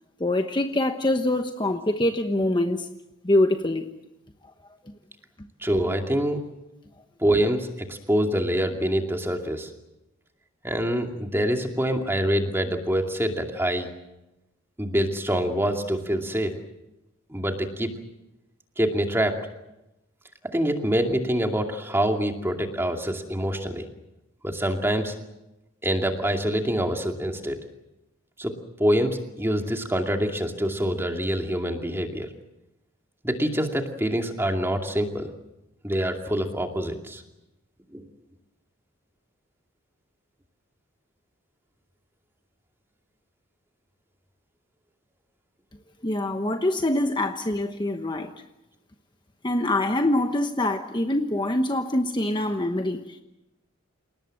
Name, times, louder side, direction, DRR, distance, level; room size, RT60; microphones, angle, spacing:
voice 1, 0.2-2.9 3.2-3.9 46.0-48.3 49.4-53.0, left 1 dB, 20° left, 6 dB, 1.1 m, -24 dB
voice 2, 5.6-6.4 7.2-9.7 10.6-13.9 14.8-16.5 17.3-17.9 18.8-19.4 20.5-23.9 24.4-25.1 25.8-27.6 28.4-28.5 28.8-32.3 33.2-35.3 35.8-37.2 37.9-38.1, equal, 10° right, 4 dB, 2.4 m, -25 dB
28.5 x 18.5 x 7.7 m, 0.95 s
head